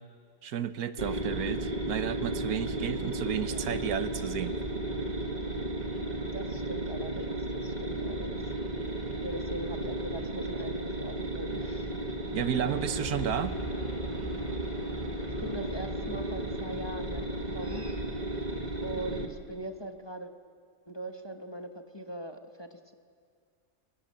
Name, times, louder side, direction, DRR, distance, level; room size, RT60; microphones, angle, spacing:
voice 1, 0.4-4.6 12.3-13.6, right 9 dB, 80° right, 11 dB, 1.4 m, -32 dB
sound 1, 1.0-19.3, right 1 dB, 30° right, 1.8 m, -34 dB
voice 2, 6.2-8.4 9.2-11.9 15.2-17.9 18.8-20.3 20.9-22.9, right 1 dB, 20° left, 5 dB, 1.2 m, -41 dB
sound 2, 12.5-17.9, equal, 35° left, 3.9 m, -43 dB
29.0 x 20.5 x 7.5 m, 2.2 s
omnidirectional pair, 1.6 m